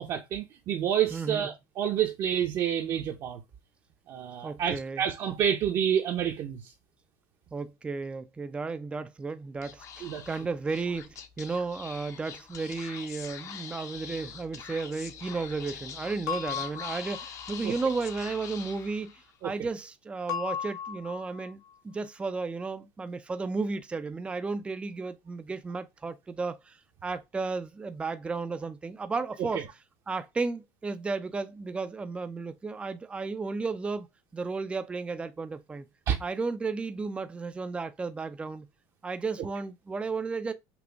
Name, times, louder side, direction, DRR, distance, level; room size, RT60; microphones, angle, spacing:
voice 1, 0.0-3.4 4.1-6.6 10.0-10.2 17.6-17.7 19.4-19.5 29.5-29.6 36.1-36.2, right 9 dB, 45° right, 0.9 m, -28 dB
voice 2, 1.1-1.5 4.4-5.1 7.5-29.6 30.1-34.1 34.3-35.9 36.2-38.7 39.0-40.5, right 4 dB, 15° right, 0.5 m, -34 dB
Speech / Whispering, 9.6-19.4, left 7 dB, 40° left, 0.8 m, -44 dB
sound 1, 16.3-17.6 20.3-21.5, left 8 dB, 80° left, 1.7 m, -36 dB
6.0 x 2.3 x 3.4 m
supercardioid pair, 120°, 8 cm